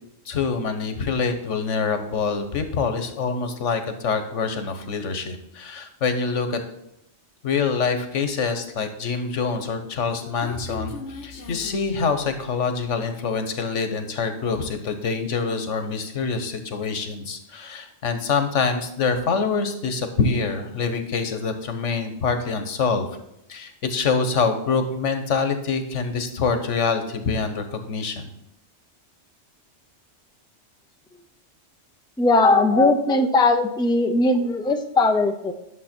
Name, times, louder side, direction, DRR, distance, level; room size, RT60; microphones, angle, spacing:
voice 1, 0.3-6.6 7.4-10.9 11.2-23.1 23.5-28.3, left 5 dB, 90° left, 7 dB, 1.4 m, -25 dB
Human voice, 9.8-12.8, left 4 dB, 75° left, 1.4 m, -38 dB
voice 2, 32.2-35.5, left 2 dB, 5° left, 6 dB, 0.4 m, -19 dB
11.0 x 7.1 x 4.4 m, 0.84 s
omnidirectional pair, 1.2 m